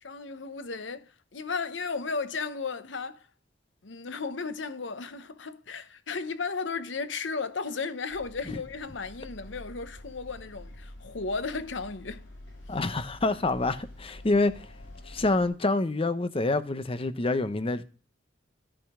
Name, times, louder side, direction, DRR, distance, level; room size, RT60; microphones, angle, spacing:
voice 1, 0.0-3.3 3.8-12.3, left 4 dB, 70° left, 0.9 m, -35 dB
sound 1, 8.1-15.5, left 1 dB, 90° left, 5.7 m, -47 dB
voice 2, 12.7-14.7 15.1-17.8, left 2 dB, 30° left, 0.7 m, -27 dB
13.5 x 5.1 x 3.7 m
head